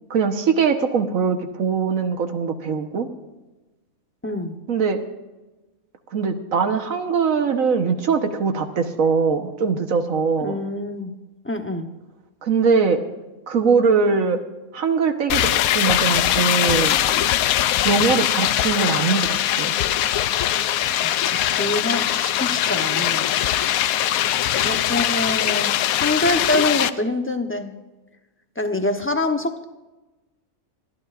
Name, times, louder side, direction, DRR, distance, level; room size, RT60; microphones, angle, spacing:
voice 1, 0.1-3.1 4.7-5.0 6.1-10.5 12.4-13.0 13.5-14.4 14.7-17.0 17.8-19.7, right 5 dB, 75° right, 6 dB, 1.5 m, -21 dB
voice 2, 4.2-4.6 10.4-11.1 11.4-11.9 21.0-23.6 24.6-27.7 28.6-29.6, left 2 dB, 10° left, 6 dB, 0.7 m, -26 dB
sound 1, 15.3-26.9, left 12 dB, 85° left, 1.0 m, -21 dB
25.5 x 12.0 x 2.5 m, 1.1 s
omnidirectional pair, 1.4 m